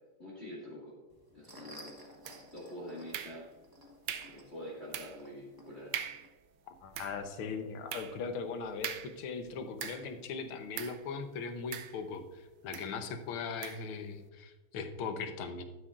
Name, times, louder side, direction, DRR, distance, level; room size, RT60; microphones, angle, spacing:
voice 1, 0.2-0.9 1.3-2.1 2.5-3.4 4.3-6.0, equal, 30° left, -6 dB, 2.3 m, -46 dB
sound 1, 1.1-6.3, equal, 15° right, 0.9 m, -54 dB
sound 2, 2.2-2.7 3.1-3.7 4.1-4.4 4.9-5.3 5.6-5.7 5.9-6.3 6.8-10.2 10.7-11.1 11.7-12.3 12.7-13.0 13.6-13.9, right 9 dB, 70° right, 1.1 m, -42 dB
voice 2, 6.7-15.6, left 5 dB, 80° left, 7 dB, 1.8 m, -39 dB
11.5 x 9.8 x 2.5 m, 1.2 s
omnidirectional pair, 2.3 m